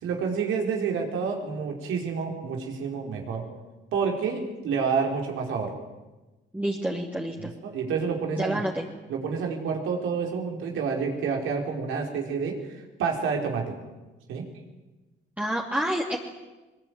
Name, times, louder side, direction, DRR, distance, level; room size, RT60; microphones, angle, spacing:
voice 1, 0.0-3.5 3.9-5.7 7.4-8.6 9.1-13.7 14.3-14.4, right 5 dB, 85° right, 2 dB, 4.8 m, -29 dB
voice 2, 6.5-7.5 8.4-8.8 15.4-16.2, right 1 dB, 5° right, -2 dB, 2.9 m, -28 dB
21.5 x 21.5 x 9.7 m, 1.1 s
cardioid pair, 90°, 20 cm